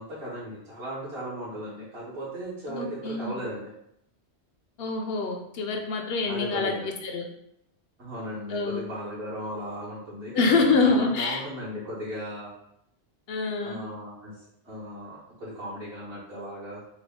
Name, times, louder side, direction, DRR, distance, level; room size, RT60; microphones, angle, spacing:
voice 1, 0.0-3.7 6.2-6.9 8.0-12.5 13.6-16.9, equal, 65° right, -10 dB, 1.4 m, -37 dB
voice 2, 2.7-3.3 4.8-6.7 7.0-7.2 8.5-8.8 10.3-11.4 13.3-13.8, left 3 dB, 70° left, 3 dB, 0.8 m, -25 dB
3.4 x 2.2 x 3.5 m, 0.75 s
omnidirectional pair, 1.1 m